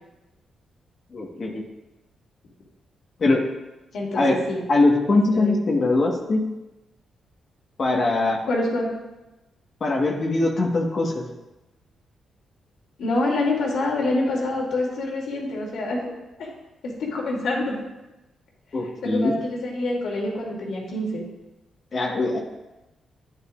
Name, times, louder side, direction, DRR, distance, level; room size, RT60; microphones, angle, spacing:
voice 1, 1.1-1.6 3.2-3.4 4.1-4.4 4.7-6.4 7.8-8.4 9.8-11.2 18.7-19.3 21.9-22.4, left 2 dB, 50° left, 0 dB, 1.4 m, -21 dB
voice 2, 3.9-4.6 5.3-5.6 8.5-8.9 13.0-16.1 16.4-16.5 16.8-17.8 18.8-21.2, left 2 dB, 80° left, -2 dB, 2.7 m, -26 dB
10.0 x 9.1 x 2.5 m, 1.0 s
cardioid pair, 75°, 0 cm